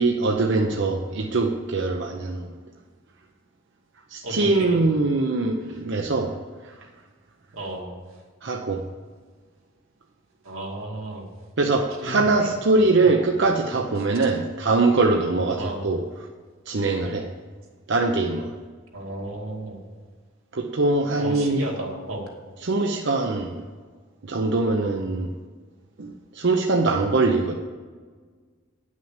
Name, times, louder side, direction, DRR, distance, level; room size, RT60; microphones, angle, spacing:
voice 1, 0.0-2.5 4.1-6.3 6.6-6.7 8.4-8.8 11.6-16.0 16.7-17.3 17.9-18.5 20.5-21.6 22.6-23.6 24.3-25.3 26.0-27.6, right 3 dB, 60° right, 2 dB, 0.7 m, -22 dB
voice 2, 4.2-4.8 7.5-7.9 10.4-11.3 12.0-12.6 13.0-13.3 15.6-15.9 18.9-19.8 21.1-22.3, right 1 dB, 85° right, -2 dB, 2.4 m, -33 dB
10.5 x 6.3 x 7.2 m, 1.5 s
head